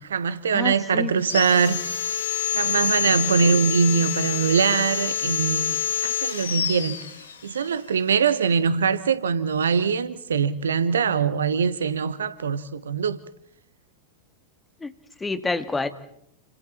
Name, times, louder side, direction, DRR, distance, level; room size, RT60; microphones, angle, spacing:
voice 1, 0.0-1.8 2.5-7.0 7.4-13.2, right 6 dB, 70° right, 1.2 m, -23 dB
voice 2, 0.5-1.4 14.8-14.9 15.2-15.9, left 3 dB, 10° left, 1.8 m, -28 dB
Sawing, 1.2-7.7, left 8 dB, 65° left, 1.9 m, -27 dB
30.0 x 26.5 x 4.4 m
figure-of-eight pair, 90°, 0 cm